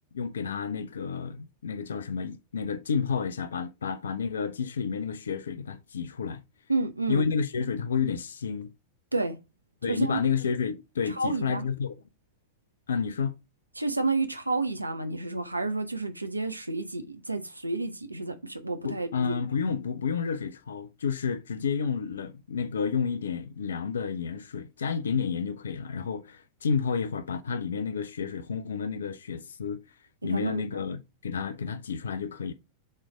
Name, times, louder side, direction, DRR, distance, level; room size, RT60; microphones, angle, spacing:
voice 1, 0.1-6.4 7.1-8.7 9.8-11.9 12.9-13.3 18.8-29.8 30.2-32.5, left 6 dB, 65° left, 0.5 m, -30 dB
voice 2, 6.7-7.3 9.1-9.4 9.9-10.2 11.1-11.6 13.8-19.3 30.2-30.8, right 3 dB, 85° right, 0.7 m, -30 dB
7.3 x 3.2 x 4.9 m
figure-of-eight pair, 90°, 0 cm